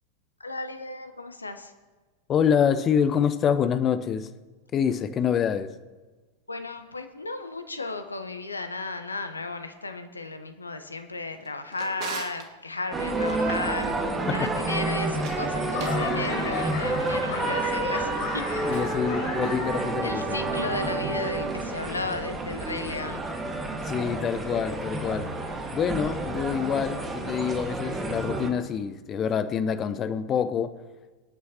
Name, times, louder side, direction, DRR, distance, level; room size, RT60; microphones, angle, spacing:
voice 1, 0.4-1.7 6.5-14.0 14.3-18.9 20.0-23.2, left 3 dB, 80° left, 8 dB, 1.0 m, -34 dB
voice 2, 2.3-4.3 4.7-5.7 14.3-14.5 18.7-20.4 23.8-25.3 25.7-30.7, left 7 dB, 25° left, 11 dB, 0.7 m, -26 dB
Drawer open or close, 11.3-12.5 15.1-16.1, right 6 dB, 40° right, 1.5 m, -39 dB
sound 1, 12.9-28.5, right 2 dB, 15° right, 1.6 m, -29 dB
Laughter / Clapping / Crowd, 15.2-20.0 20.4-20.9 21.5-21.6, left 4 dB, 50° left, 3.9 m, -34 dB
23.5 x 9.5 x 2.9 m, 1.3 s
figure-of-eight pair, 90°, 0 cm